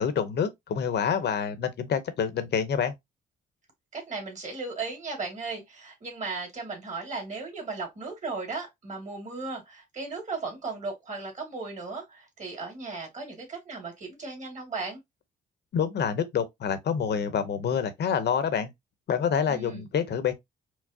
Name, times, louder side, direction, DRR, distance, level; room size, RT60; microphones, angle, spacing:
voice 1, 0.0-2.9 15.7-18.7 19.1-20.3, left 7 dB, 60° left, 0.8 m, -27 dB
voice 2, 3.9-15.0 19.5-19.9, right 3 dB, 35° right, 2.1 m, -36 dB
4.6 x 2.0 x 2.7 m
cardioid pair, 90°, 20 cm